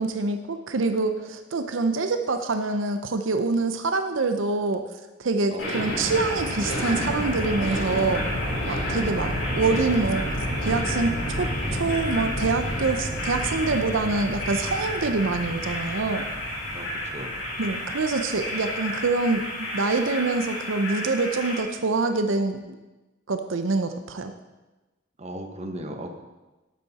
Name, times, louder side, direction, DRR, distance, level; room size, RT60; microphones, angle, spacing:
voice 1, 0.0-4.9 5.2-8.2 8.7-16.3 17.6-22.8 23.3-24.3, right 3 dB, 85° right, 7 dB, 0.7 m, -25 dB
voice 2, 5.5-6.0 9.1-9.3 16.7-17.4 25.2-26.2, right 1 dB, 35° right, 5 dB, 1.0 m, -37 dB
sound 1, 5.6-21.6, equal, 80° left, 3.6 m, -29 dB
12.5 x 8.4 x 4.2 m, 1.1 s
head